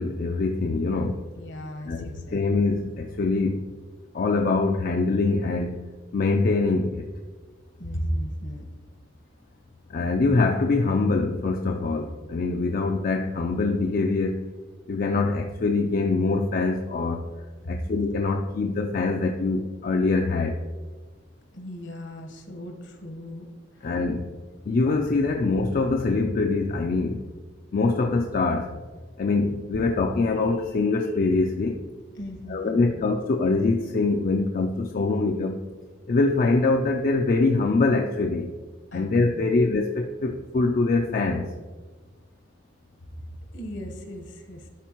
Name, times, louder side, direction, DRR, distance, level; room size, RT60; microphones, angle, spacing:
voice 1, 0.0-1.2 1.8-3.6 4.1-5.8 6.1-7.1 9.9-14.5 14.9-20.6 23.8-24.3 24.7-27.2 27.7-28.7 29.2-31.8 32.5-35.6 36.1-38.5 38.9-41.5, left 3 dB, 50° left, 3 dB, 0.4 m, -24 dB
voice 2, 1.4-2.4 7.8-8.7 17.6-17.7 21.5-23.5 23.7-24.0 32.2-32.9 38.9-39.5 43.5-44.7, equal, 70° left, 4 dB, 1.1 m, -36 dB
11.5 x 4.3 x 3.0 m, 1.4 s
head